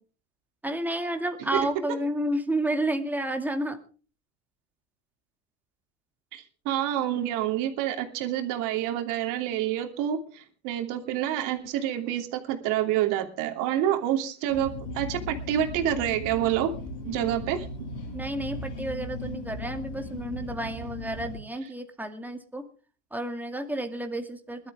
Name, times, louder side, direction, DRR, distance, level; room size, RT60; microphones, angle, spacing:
voice 1, 0.6-3.8 18.1-22.6 23.1-24.7, right 1 dB, 5° right, 5 dB, 2.3 m, -31 dB
voice 2, 6.3-16.7 17.0-17.7, right 11 dB, 65° right, 4 dB, 3.0 m, -28 dB
sound 1, 14.5-21.4, left 2 dB, 70° left, 6.5 m, -37 dB
21.0 x 12.5 x 3.5 m, 0.38 s
supercardioid pair, 100°, 34 cm